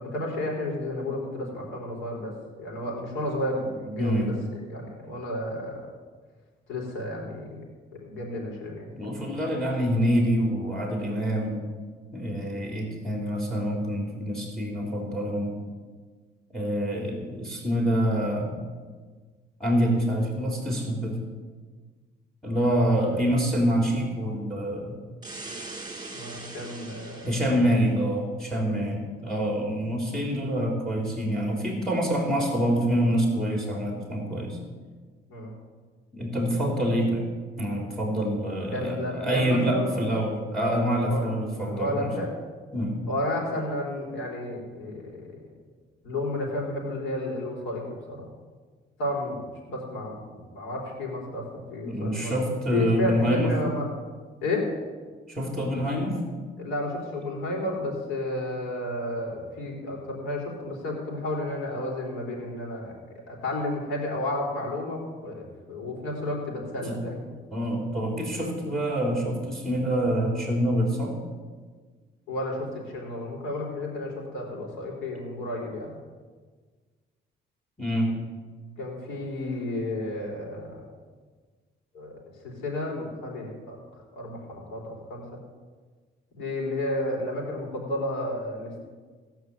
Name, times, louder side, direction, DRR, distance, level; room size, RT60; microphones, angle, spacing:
voice 1, 0.0-5.9 6.7-7.6 8.0-9.2 23.1-23.2 26.1-27.4 28.5-28.9 35.3-35.6 38.7-39.9 41.0-41.2 41.6-42.3 43.1-45.5 46.0-48.3 49.0-52.3 52.7-53.9 54.4-54.7 56.6-62.9 63.3-67.2 72.3-76.0 78.8-80.8 81.9-85.2 86.4-88.8, left 1 dB, 90° left, -2 dB, 4.2 m, -32 dB
voice 2, 4.0-4.3 9.0-11.6 12.1-15.6 16.5-18.5 19.6-21.2 22.4-25.0 27.2-34.6 36.1-37.3 37.6-42.1 42.7-43.0 51.8-53.5 55.3-56.2 66.8-67.0 67.5-71.1 77.8-78.1, equal, 5° left, 0 dB, 3.3 m, -26 dB
sound 1, 25.2-27.7, right 2 dB, 20° right, 2.9 m, -40 dB
17.5 x 5.9 x 8.2 m, 1.5 s
cardioid pair, 90°, 20 cm